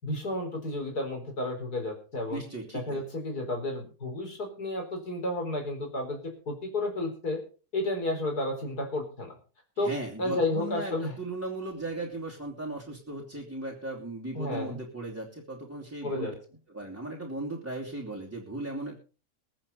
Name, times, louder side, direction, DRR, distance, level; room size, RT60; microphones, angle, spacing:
voice 1, 0.0-2.4 2.7-6.2 6.5-7.4 7.7-9.3 9.8-9.9 10.2-11.1 14.3-14.8 16.0-16.3, left 2 dB, 85° left, 3 dB, 4.7 m, -32 dB
voice 2, 2.3-3.0 9.8-16.3 16.7-19.0, right 2 dB, 10° right, -2 dB, 2.8 m, -37 dB
22.0 x 7.8 x 5.4 m, 0.37 s
omnidirectional pair, 1.6 m